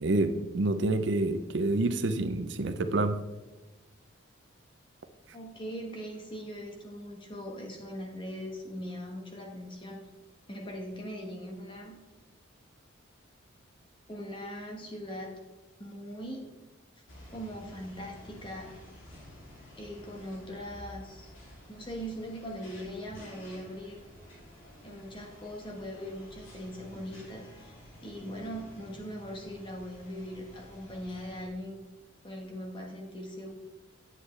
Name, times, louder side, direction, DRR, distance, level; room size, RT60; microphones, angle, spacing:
voice 1, 0.0-3.2, right 2 dB, 60° right, 9 dB, 0.5 m, -28 dB
voice 2, 5.3-10.0 10.5-12.0 14.1-15.4 15.8-16.5 17.3-18.8 19.8-21.3 21.7-24.1 24.8-27.7 28.0-31.8 32.2-33.5, equal, 25° left, 1 dB, 1.3 m, -40 dB
sound 1, 17.1-31.5, left 1 dB, 70° left, 2.8 m, -51 dB
9.4 x 8.1 x 3.3 m, 1.1 s
head